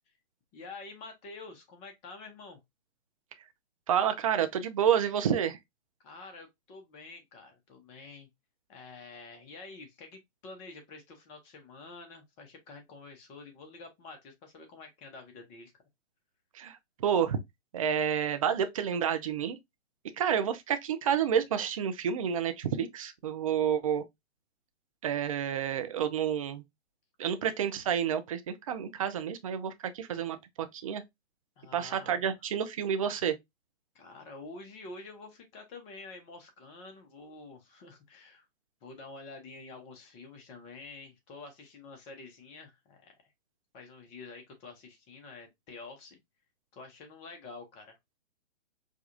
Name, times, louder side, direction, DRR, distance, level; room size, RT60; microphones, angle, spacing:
voice 1, 0.5-2.6 6.0-8.3 8.7-15.7 31.6-32.2 33.9-38.5 38.8-43.1 43.7-46.2 46.7-48.0, left 3 dB, 20° left, 0.7 m, -48 dB
voice 2, 3.9-5.6 16.5-16.8 17.0-17.4 17.7-19.6 20.2-24.0 25.0-26.6 27.2-31.0 31.7-33.4, right 8 dB, 30° right, 0.4 m, -29 dB
4.9 x 2.3 x 2.5 m
figure-of-eight pair, 130°, 34 cm